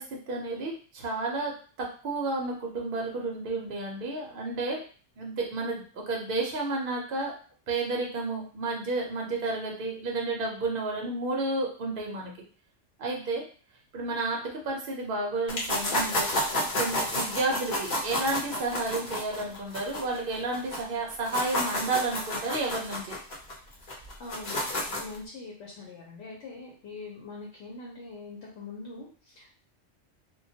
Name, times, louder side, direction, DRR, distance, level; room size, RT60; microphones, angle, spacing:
voice 1, 0.0-4.8 5.2-7.3 7.7-12.3 13.0-13.4 13.9-16.3 16.7-23.2, right 2 dB, 55° right, -1 dB, 0.7 m, -31 dB
sound 1, 15.5-20.8 21.1-25.2, left 1 dB, 45° left, 0.7 m, -31 dB
voice 2, 23.8-29.5, left 3 dB, 70° left, -3 dB, 0.9 m, -43 dB
2.2 x 2.2 x 2.6 m, 0.40 s
omnidirectional pair, 1.2 m